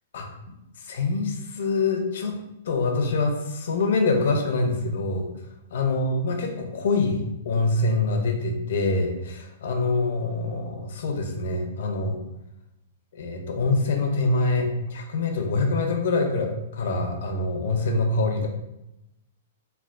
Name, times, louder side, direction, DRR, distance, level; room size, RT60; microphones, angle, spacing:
voice 1, 0.1-2.4 2.7-5.3 5.7-12.2 13.1-18.5, left 3 dB, 70° left, 3 dB, 0.5 m, -25 dB
3.3 x 2.2 x 2.4 m, 0.90 s
hypercardioid pair, 160°, 0 cm